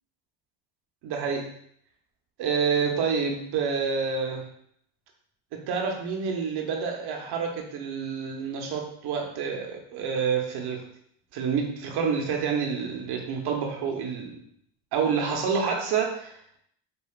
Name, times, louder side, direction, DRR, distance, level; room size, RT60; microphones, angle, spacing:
voice 1, 1.0-1.5 2.4-4.5 5.5-10.8 11.3-14.4 14.9-16.6, right 6 dB, 60° right, 2 dB, 1.0 m, -28 dB
4.4 x 2.7 x 2.4 m, 0.65 s
supercardioid pair, 75°, 44 cm